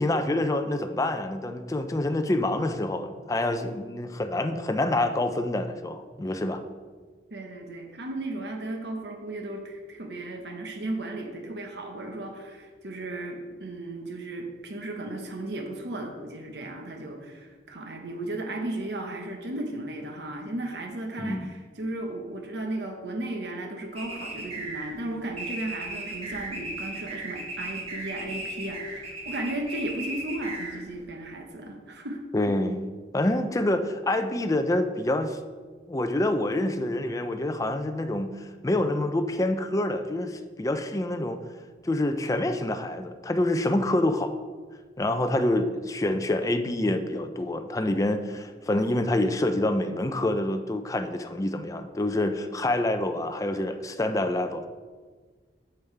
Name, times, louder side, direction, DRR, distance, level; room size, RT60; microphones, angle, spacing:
voice 1, 0.0-6.6 21.2-21.5 32.3-35.4 35.9-41.4 41.8-44.3 45.0-54.7, left 1 dB, 20° left, 8 dB, 0.4 m, -27 dB
voice 2, 7.3-32.2, right 1 dB, 65° right, 3 dB, 1.0 m, -35 dB
sound 1, 24.0-31.0, right 2 dB, 35° right, 1.8 m, -36 dB
8.2 x 7.0 x 3.3 m, 1.5 s
head